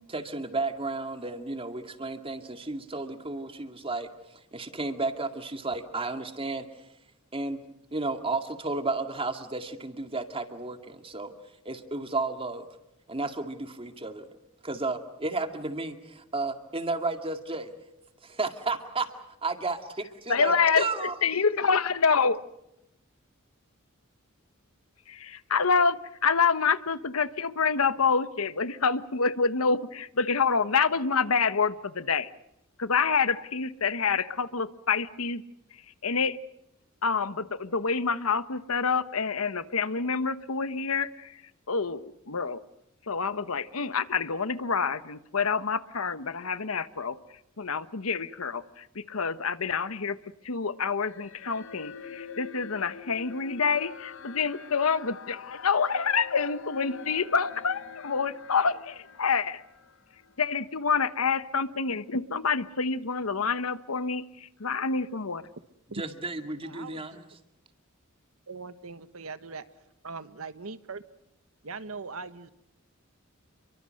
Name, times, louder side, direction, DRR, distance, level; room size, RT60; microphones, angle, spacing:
voice 1, 0.0-6.7 7.3-7.6 7.9-11.3 11.7-12.6 13.1-14.4 14.6-17.7 18.2-19.1 19.4-21.2 65.9-67.3, right 3 dB, 25° right, 7 dB, 2.1 m, -33 dB
voice 2, 20.3-22.3 25.1-32.3 32.8-35.4 35.7-36.4 37.0-41.4 41.7-42.6 43.1-50.2 50.4-59.6 60.4-65.5, left 5 dB, 85° left, 14 dB, 1.1 m, -27 dB
sound 1, 51.0-60.6, left 7 dB, 65° left, 1.1 m, -45 dB
voice 3, 66.6-67.2 68.5-69.6 70.0-71.0 71.6-72.5, right 4 dB, 80° right, 12 dB, 1.3 m, -40 dB
29.5 x 23.5 x 6.5 m, 0.87 s
head